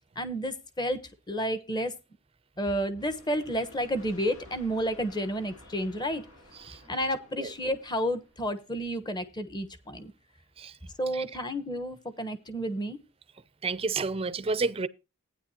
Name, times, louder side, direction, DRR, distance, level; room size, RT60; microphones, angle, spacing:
voice 1, 0.1-1.9 2.6-6.2 6.9-10.1 11.0-13.0, equal, 20° left, 1.1 m, -31 dB
sound 1, 2.9-8.6, equal, 80° left, 3.1 m, -54 dB
voice 2, 13.6-14.9, right 4 dB, 25° right, 0.5 m, -30 dB
15.0 x 9.6 x 2.8 m
head